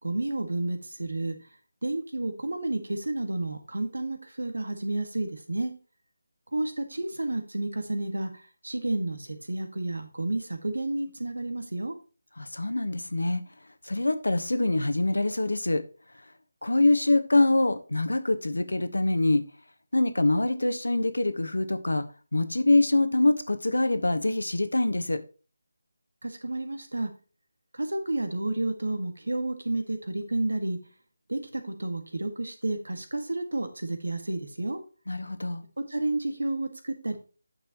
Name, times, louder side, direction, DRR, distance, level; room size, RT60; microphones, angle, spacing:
voice 1, 0.0-1.4 1.8-5.7 6.5-8.3 8.6-11.9 26.2-27.1 27.7-30.8 31.3-34.8 35.9-37.2, right 2 dB, 90° right, 7 dB, 1.8 m, -31 dB
voice 2, 12.4-13.4 13.9-15.8 16.6-19.4 19.9-22.0 22.3-25.2 35.1-35.6, left 2 dB, 90° left, 9 dB, 1.2 m, -24 dB
9.3 x 6.7 x 3.0 m, 0.35 s
figure-of-eight pair, 165°, 0 cm